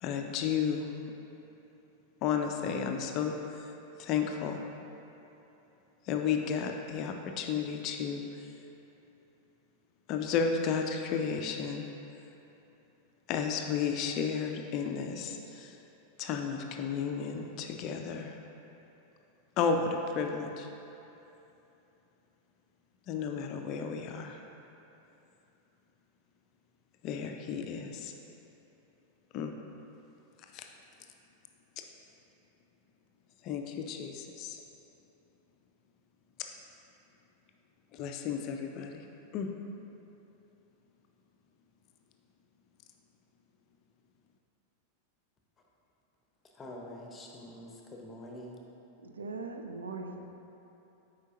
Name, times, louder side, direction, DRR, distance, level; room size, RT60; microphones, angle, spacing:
voice 1, 0.0-0.9 2.2-3.3 4.0-4.6 6.1-8.2 10.1-11.8 13.3-15.7 16.2-18.4 19.6-20.7 23.1-24.4 27.0-28.1 29.3-29.5 30.5-30.7 33.4-34.6 37.9-39.0 39.3-39.5, left 6 dB, 40° left, 4 dB, 0.4 m, -32 dB
voice 2, 46.6-48.6, left 1 dB, 20° left, 0 dB, 0.8 m, -46 dB
voice 3, 49.0-50.3, right 3 dB, 70° right, 4 dB, 0.4 m, -40 dB
8.0 x 5.0 x 2.8 m, 3.0 s
figure-of-eight pair, 90°, 0 cm